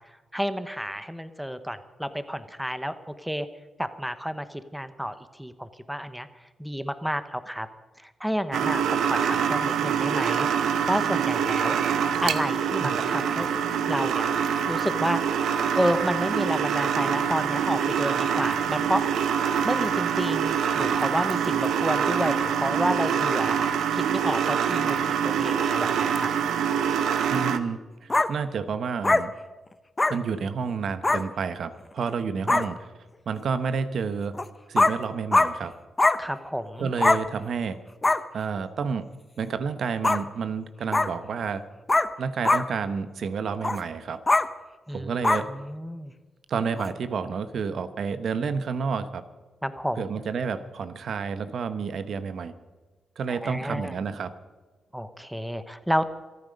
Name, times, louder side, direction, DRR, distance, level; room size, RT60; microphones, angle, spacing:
voice 1, 0.3-3.5 3.8-7.7 8.0-10.5 10.9-11.8 12.2-13.5 13.9-14.3 14.7-15.2 15.7-19.0 19.6-23.6 23.9-26.3 32.5-32.6 36.2-36.9 44.9-45.2 45.5-46.1 49.6-50.1 53.3-54.0 54.9-56.1, equal, ahead, 11 dB, 1.0 m, -30 dB
sound 1, 8.5-27.6, right 7 dB, 90° right, 0.9 m, -25 dB
sound 2, 11.8-18.6, left 4 dB, 70° left, 2.0 m, -43 dB
voice 2, 27.3-29.3 30.1-32.9 33.3-34.3 34.7-35.7 36.8-37.8 38.3-39.0 39.4-41.6 42.2-44.2 44.9-45.5 46.5-49.2 50.0-52.5 53.2-54.3, right 5 dB, 65° right, 12 dB, 1.0 m, -30 dB
sound 3, 28.1-28.3 29.0-29.2 30.0-30.1 31.0-31.2 32.1-32.2 32.5-32.7 34.3-34.4 34.8-34.9 35.3-35.5 36.0-36.2 37.0-37.2 38.0-38.2 40.0-40.2 40.9-41.1 41.9-42.1 42.5-42.6 43.6-43.8 44.3-44.5 45.2-45.4 46.8-46.9, left 2 dB, 20° left, 0.8 m, -21 dB
26.0 x 9.5 x 5.3 m, 1.3 s
cardioid pair, 95°, 0 cm